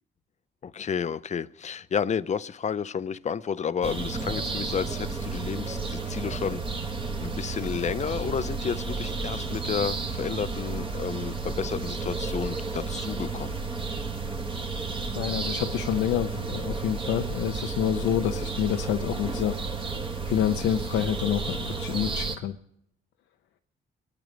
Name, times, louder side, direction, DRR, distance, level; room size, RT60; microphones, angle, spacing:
voice 1, 0.6-6.6 7.2-13.6, left 7 dB, 35° left, 0.6 m, -31 dB
sound 1, 3.8-22.4, right 4 dB, 25° right, 1.6 m, -32 dB
voice 2, 15.1-19.5 20.3-22.6, left 10 dB, 90° left, 0.7 m, -27 dB
22.5 x 9.3 x 5.1 m
cardioid pair, 90°, 20 cm